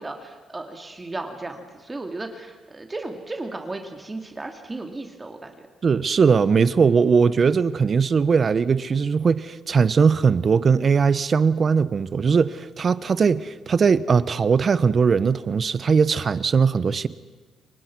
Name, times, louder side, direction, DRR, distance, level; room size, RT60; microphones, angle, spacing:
voice 1, 0.0-5.7, right 2 dB, 20° right, 2.6 m, -35 dB
voice 2, 5.8-17.1, right 5 dB, 45° right, 1.0 m, -20 dB
28.5 x 24.0 x 6.2 m
cardioid pair, 90°, 0 cm